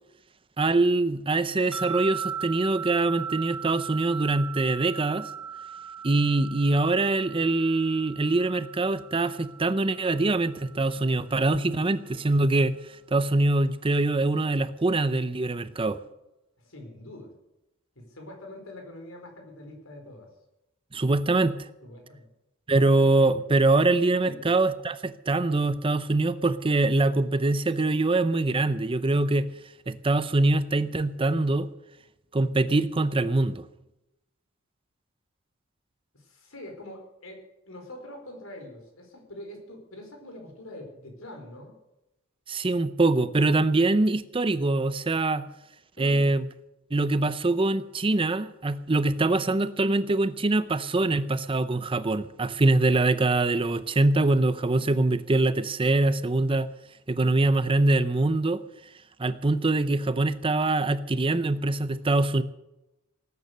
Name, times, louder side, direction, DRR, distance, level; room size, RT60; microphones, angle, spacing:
voice 1, 0.6-5.3 6.0-12.8 13.1-16.0 20.9-21.7 22.7-29.5 29.9-31.7 32.3-33.6 42.5-45.4 46.0-46.5 46.9-56.7 57.1-58.6 59.2-62.4, right 2 dB, 25° right, 13 dB, 0.6 m, -24 dB
sound 1, 1.7-11.0, right 7 dB, ahead, 1.9 m, -38 dB
voice 2, 16.6-17.3 17.9-20.3 21.8-22.3 24.2-24.5 36.1-41.8 46.0-46.3, left 1 dB, 80° left, 3 dB, 4.7 m, -44 dB
18.5 x 9.6 x 6.7 m, 0.92 s
head